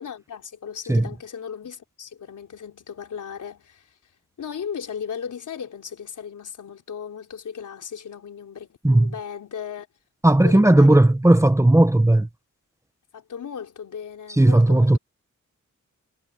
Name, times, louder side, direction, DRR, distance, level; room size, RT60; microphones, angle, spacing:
voice 1, 0.0-3.9 4.4-9.9 10.3-11.1 13.1-15.0, left 7 dB, 80° left, 4.1 m, -36 dB
voice 2, 10.2-12.3 14.4-15.0, right 1 dB, 10° right, 1.1 m, -15 dB
wide cardioid pair, 130°, 30 cm